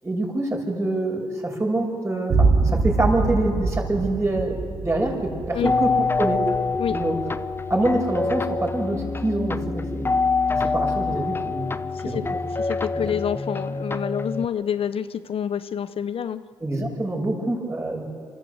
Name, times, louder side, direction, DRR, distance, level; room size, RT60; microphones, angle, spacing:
voice 1, 0.0-4.6 4.8-6.4 6.9-7.2 7.7-10.1 10.5-11.7 12.0-12.2 16.6-18.0, right 2 dB, 25° right, 1 dB, 6.4 m, -25 dB
sound 1, 2.3-9.7, right 3 dB, 55° right, 1.8 m, -26 dB
sound 2, 5.6-14.4, left 4 dB, 20° left, 0.9 m, -26 dB
voice 2, 12.6-16.4, left 8 dB, 60° left, 13 dB, 0.7 m, -27 dB
25.5 x 13.5 x 8.0 m, 2.1 s
supercardioid pair, 55°, 11 cm